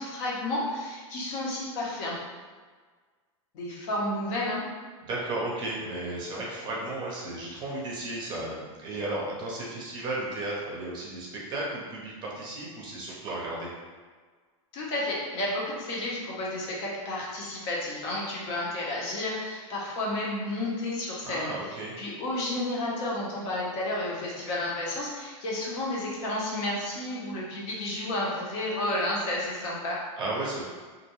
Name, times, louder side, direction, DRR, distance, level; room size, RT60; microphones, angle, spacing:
voice 1, 0.0-2.2 3.5-4.6 14.7-21.5 22.0-30.0, left 1 dB, 50° left, -4 dB, 0.7 m, -31 dB
voice 2, 5.0-13.7 21.3-22.0 30.2-30.6, right 2 dB, 25° right, -4 dB, 0.6 m, -34 dB
2.4 x 2.2 x 2.9 m, 1.5 s
supercardioid pair, 145°, 17 cm